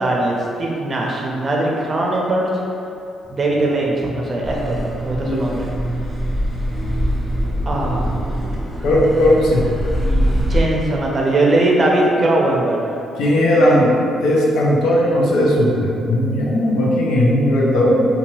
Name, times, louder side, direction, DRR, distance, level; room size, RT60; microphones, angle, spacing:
voice 1, 0.0-2.5 3.3-5.7 7.6-8.4 10.0-12.9, right 2 dB, 35° right, -2 dB, 0.5 m, -20 dB
sound 1, 3.2-10.9, right 3 dB, 60° left, 1.5 m, -32 dB
Car passing by / Accelerating revving vroom, 4.4-10.6, equal, 15° left, 0.5 m, -23 dB
voice 2, 8.8-9.8 13.2-13.9 14.2-18.1, left 1 dB, 75° left, -3 dB, 0.5 m, -16 dB
2.7 x 2.3 x 3.1 m, 2.5 s
cardioid pair, 90°, 0 cm